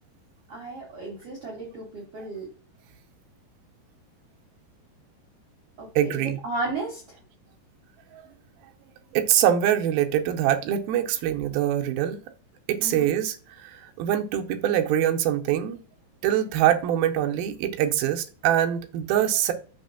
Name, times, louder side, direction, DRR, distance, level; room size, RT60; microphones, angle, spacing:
voice 1, 0.5-2.5 5.8-7.2 12.8-13.2, right 2 dB, 65° right, 1.5 m, -34 dB
voice 2, 6.0-6.4 8.1-8.2 9.1-12.2 12.7-13.4 13.6-15.8 16.2-19.5, right 11 dB, 80° right, 2.2 m, -24 dB
6.2 x 3.3 x 5.4 m
omnidirectional pair, 4.9 m